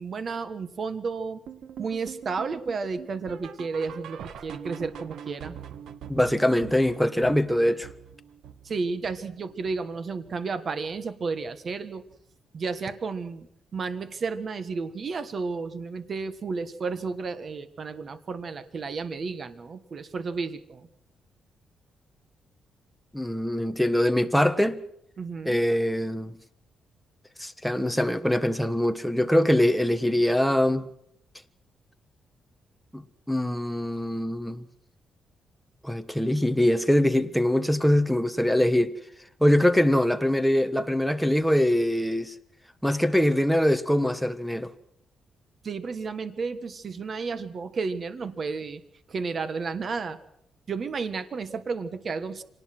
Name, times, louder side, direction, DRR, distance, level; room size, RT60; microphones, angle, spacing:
voice 1, 0.0-1.4 1.8-5.6 8.6-12.0 12.5-13.5 13.7-20.9 25.2-25.6 45.6-48.8 49.1-50.2 50.7-52.4, right 4 dB, 40° right, 1.5 m, -32 dB
sound 1, 1.5-10.6 10.9-11.2 11.5-11.6 12.1-12.2 12.7-12.8, right 8 dB, 80° right, 1.5 m, -44 dB
voice 2, 6.1-7.9 23.1-24.8 25.4-26.3 27.4-30.9 32.9-33.0 33.3-34.6 35.8-38.9 39.4-42.3 42.8-44.7, left 1 dB, ahead, 1.4 m, -23 dB
26.0 x 19.0 x 6.2 m
cardioid pair, 135°, 0 cm